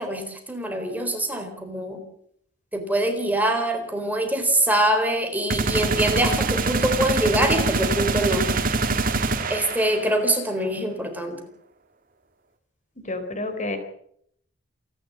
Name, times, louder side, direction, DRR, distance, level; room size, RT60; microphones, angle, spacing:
voice 1, 0.0-2.0 2.7-8.5 9.5-11.5, right 1 dB, 10° right, 5 dB, 4.0 m, -24 dB
sound 1, 5.5-10.2, right 3 dB, 50° right, 2.1 m, -24 dB
voice 2, 13.0-13.8, left 2 dB, 40° left, 8 dB, 3.9 m, -29 dB
28.0 x 11.5 x 8.6 m, 0.68 s
head